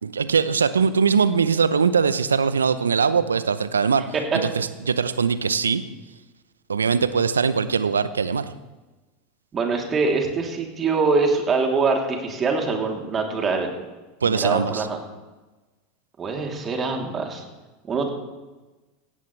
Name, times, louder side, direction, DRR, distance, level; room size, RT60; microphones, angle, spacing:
voice 1, 0.0-4.0 4.6-5.8 6.7-8.5 14.2-14.9, right 6 dB, 85° right, 14 dB, 0.7 m, -21 dB
voice 2, 9.5-13.7 14.2-15.0 16.2-17.4 17.9-18.1, right 4 dB, 30° right, 1 dB, 3.2 m, -23 dB
17.0 x 16.0 x 3.3 m, 1.2 s
figure-of-eight pair, 85°, 0 cm